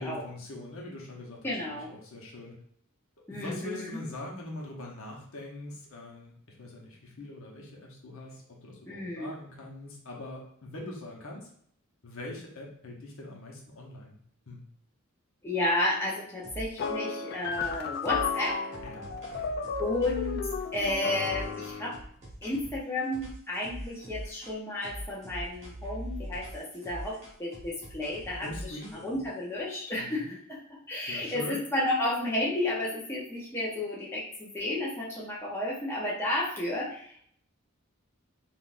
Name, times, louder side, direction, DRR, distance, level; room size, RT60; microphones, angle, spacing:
voice 1, 0.0-2.5 3.3-11.5 12.0-14.2 14.5-14.6 18.8-19.1 28.4-29.2 30.0-30.3 31.1-31.6, left 1 dB, 70° left, -1 dB, 0.8 m, -42 dB
voice 2, 1.4-1.9 3.3-4.0 8.9-9.3 15.4-18.6 19.8-20.4 20.7-22.0 22.4-28.5 29.0-37.2, left 1 dB, 10° left, -6 dB, 0.6 m, -32 dB
sound 1, 16.4-17.2 17.5-22.8 23.1-24.6 24.8-29.3, right 1 dB, 30° right, 1.1 m, -42 dB
sound 2, 16.8-22.0, left 5 dB, 45° left, 0.3 m, -33 dB
3.7 x 2.4 x 2.5 m, 0.63 s
head